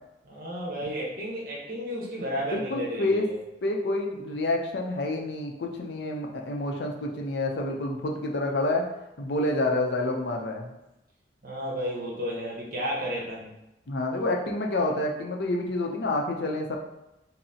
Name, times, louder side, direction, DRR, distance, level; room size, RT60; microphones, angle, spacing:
voice 1, 0.2-3.4 11.4-13.5, equal, 50° right, -3 dB, 1.0 m, -32 dB
voice 2, 2.4-3.3 3.6-8.8 9.2-10.7 13.9-16.8, left 2 dB, 65° left, 2 dB, 0.5 m, -28 dB
5.4 x 2.0 x 2.7 m, 0.92 s
head